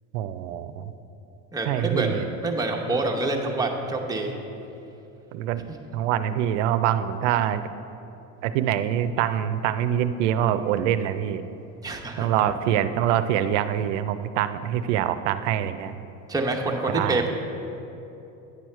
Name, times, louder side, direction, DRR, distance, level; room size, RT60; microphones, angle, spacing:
voice 1, 0.1-0.9 1.7-2.3 5.3-5.6 5.9-7.7 8.4-11.4 12.2-16.0 16.9-17.3, right 10 dB, 80° right, 12 dB, 0.5 m, -25 dB
voice 2, 1.5-4.3 11.8-12.3 16.3-17.3, right 2 dB, 10° right, 1 dB, 0.9 m, -26 dB
9.6 x 6.3 x 4.5 m, 2.9 s
supercardioid pair, 105°, 36 cm